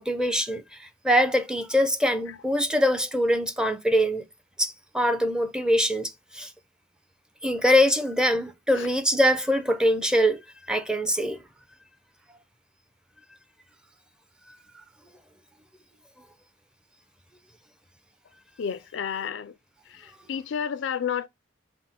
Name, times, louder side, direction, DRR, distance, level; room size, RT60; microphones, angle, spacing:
voice 1, 0.0-4.2 4.6-6.5 7.4-10.4 10.7-11.4, equal, 5° right, 0.5 m, -23 dB
voice 2, 18.6-19.5 19.9-21.3, left 7 dB, 80° left, 0.4 m, -31 dB
5.7 x 2.0 x 4.3 m
head